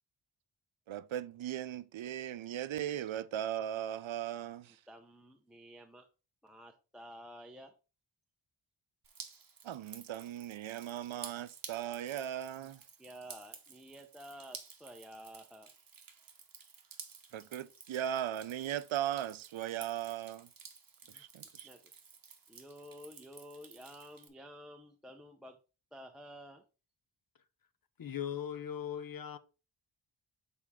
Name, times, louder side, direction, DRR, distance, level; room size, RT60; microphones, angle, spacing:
voice 1, 0.9-4.8 9.6-12.8 17.3-20.5 21.1-21.7, right 11 dB, 70° right, 0.5 m, -38 dB
voice 2, 4.6-6.1 6.4-7.7 13.0-15.7 21.1-21.2 21.5-22.0 22.5-25.6 25.9-26.6, equal, ahead, 0.5 m, -52 dB
Drip, 9.0-24.3, right 6 dB, 45° right, 1.0 m, -53 dB
voice 3, 28.0-29.4, left 9 dB, 45° left, 0.6 m, -39 dB
6.5 x 4.3 x 3.5 m
wide cardioid pair, 135°, 49 cm